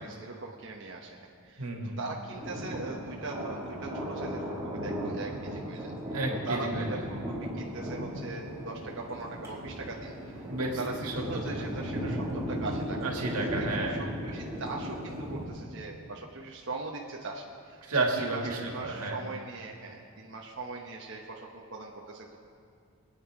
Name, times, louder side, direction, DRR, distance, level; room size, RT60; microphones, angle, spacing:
voice 1, 0.0-1.7 2.0-5.9 6.4-13.1 13.6-17.8 18.1-22.4, right 3 dB, 55° right, -1 dB, 1.0 m, -40 dB
voice 2, 1.6-2.0 6.1-7.0 10.5-11.6 13.0-14.1 17.8-19.2, right 2 dB, 90° right, 1 dB, 2.0 m, -32 dB
Thunder, 2.3-15.5, equal, 10° right, 2.0 m, -36 dB
22.0 x 9.3 x 4.8 m, 2.3 s
head